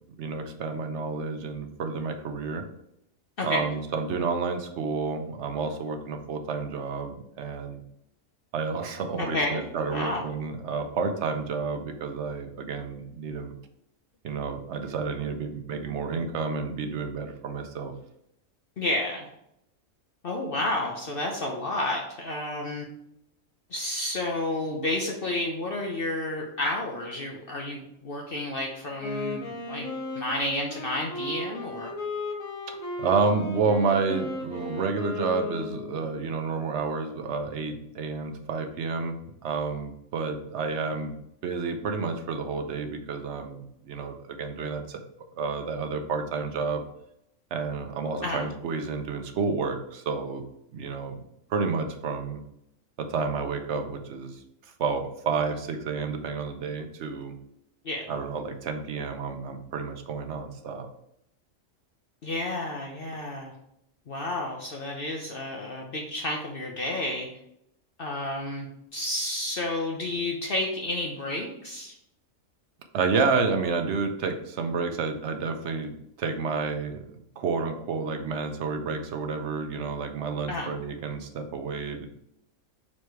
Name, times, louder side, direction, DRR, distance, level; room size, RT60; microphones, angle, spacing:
voice 1, 0.2-2.6 3.4-7.8 8.5-13.5 14.2-17.9 33.0-41.2 41.4-45.0 45.3-46.8 47.5-50.4 50.7-51.2 51.5-52.4 53.0-57.3 58.1-60.9 72.9-82.1, right 4 dB, 60° right, 6 dB, 1.0 m, -30 dB
voice 2, 9.2-9.6 9.9-10.2 18.8-19.3 20.2-22.9 23.7-29.9 30.1-31.9 48.2-48.5 57.8-58.1 62.2-63.5 64.1-67.3 68.0-71.9 80.5-80.8, left 1 dB, 50° left, 0 dB, 0.9 m, -31 dB
Wind instrument woodwind instrument, 28.9-36.0, left 2 dB, 85° left, 1.9 m, -35 dB
4.8 x 4.2 x 4.6 m, 0.78 s
omnidirectional pair, 1.4 m